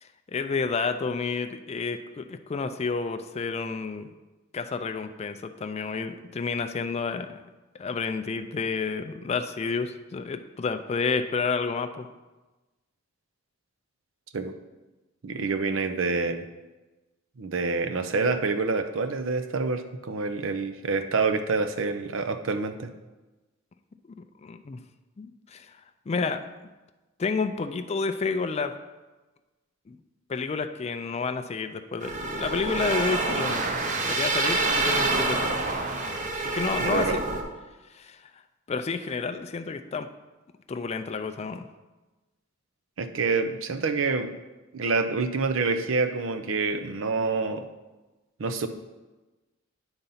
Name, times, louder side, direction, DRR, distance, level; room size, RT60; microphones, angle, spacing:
voice 1, 0.0-4.1 4.5-7.4 7.8-12.1 24.4-24.8 25.2-25.8 26.1-26.5 27.2-28.7 29.9-30.0 30.3-35.5 36.4-37.2 37.9-38.3 38.7-40.1 40.7-41.7, left 4 dB, 30° left, 8 dB, 0.4 m, -30 dB
voice 2, 15.2-16.5 17.4-22.9 36.3-36.5 36.8-37.2 43.0-44.3 44.7-47.6 48.4-48.7, right 4 dB, 70° right, 9 dB, 0.6 m, -27 dB
sound 1, 32.0-37.4, right 3 dB, 40° right, 0.8 m, -27 dB
8.9 x 4.0 x 5.6 m, 1.2 s
head